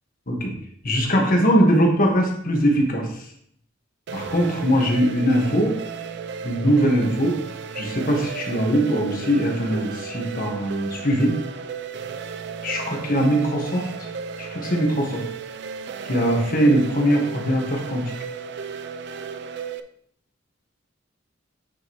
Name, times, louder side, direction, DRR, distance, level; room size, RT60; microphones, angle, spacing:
voice 1, 0.8-3.1 4.1-5.7 6.4-7.3 7.7-11.3 12.6-13.9 14.4-15.2 16.1-18.0, equal, 45° left, 1 dB, 1.4 m, -21 dB
sound 1, 4.1-19.8, right 6 dB, 60° right, 0.5 m, -34 dB
8.8 x 5.2 x 3.0 m, 0.68 s
head